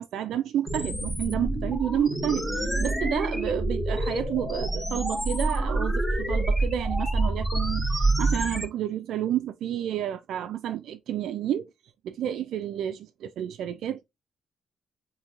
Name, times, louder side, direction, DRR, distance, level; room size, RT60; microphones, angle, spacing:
voice 1, 0.0-2.5 2.8-11.7 12.0-14.0, right 10 dB, 75° right, 0.3 m, -30 dB
sound 1, 0.7-8.7, right 2 dB, 5° left, 1.2 m, -27 dB
4.3 x 2.7 x 2.5 m
cardioid pair, 90°, 0 cm